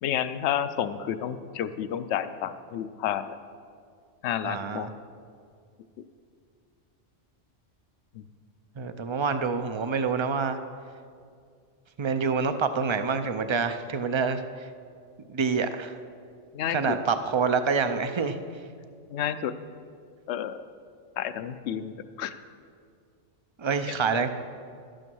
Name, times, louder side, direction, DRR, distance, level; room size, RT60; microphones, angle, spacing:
voice 1, 0.0-3.4 4.2-4.9 8.1-8.2 16.5-17.0 19.1-19.5 20.3-20.6 21.2-22.3, left 10 dB, 70° left, 12 dB, 0.8 m, -30 dB
voice 2, 4.4-4.9 8.8-10.6 12.0-14.7 15.3-15.9 16.7-18.4 23.6-24.3, right 5 dB, 45° right, 9 dB, 0.3 m, -27 dB
12.5 x 8.9 x 6.2 m, 2.2 s
omnidirectional pair, 1.3 m